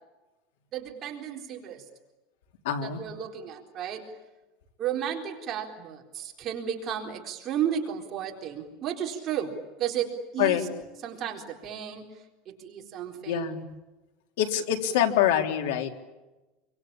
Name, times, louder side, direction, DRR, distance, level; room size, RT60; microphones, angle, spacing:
voice 1, 0.7-1.8 2.8-4.1 4.8-9.5 9.8-10.6 11.0-12.1 12.5-13.6, right 9 dB, 30° right, 1 dB, 4.1 m, -33 dB
voice 2, 2.6-3.0 10.4-10.6 13.3-13.6 14.4-16.0, left 10 dB, 90° left, 4 dB, 3.7 m, -25 dB
27.0 x 25.0 x 8.9 m, 1.1 s
supercardioid pair, 160°, 0 cm